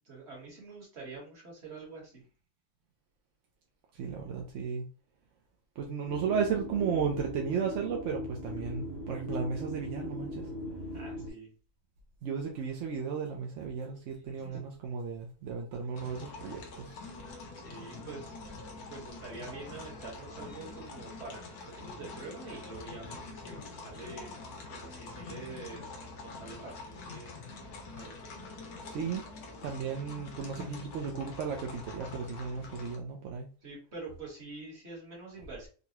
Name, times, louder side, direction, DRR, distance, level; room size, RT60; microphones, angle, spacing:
voice 1, 0.1-2.2 10.9-11.5 14.2-14.7 17.5-18.3 18.9-24.3 24.7-25.9 26.2-27.4 28.0-28.4 33.6-35.7, right 3 dB, 45° right, -2 dB, 1.6 m, -46 dB
voice 2, 3.9-4.8 5.8-10.5 12.2-17.0 28.9-29.2 29.6-33.5, right 6 dB, 65° right, 1 dB, 0.8 m, -34 dB
sound 1, 6.1-11.3, left 1 dB, 50° left, 0.9 m, -39 dB
sound 2, 15.9-33.0, left 3 dB, 75° left, 1.3 m, -45 dB
3.9 x 2.2 x 2.8 m, 0.37 s
omnidirectional pair, 1.6 m